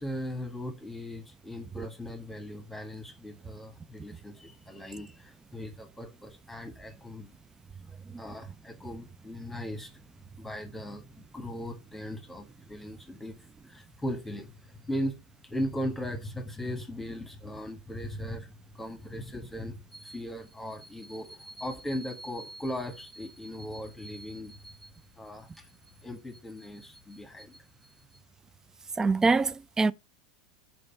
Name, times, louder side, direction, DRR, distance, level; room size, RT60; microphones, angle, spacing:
voice 1, 0.0-7.4 7.8-10.0 10.4-13.4 13.6-15.1 15.4-28.1, equal, 5° left, 1.3 m, -38 dB
voice 2, 29.0-29.9, right 3 dB, 15° right, 0.3 m, -24 dB
5.2 x 4.7 x 5.5 m
hypercardioid pair, 95°, 3 cm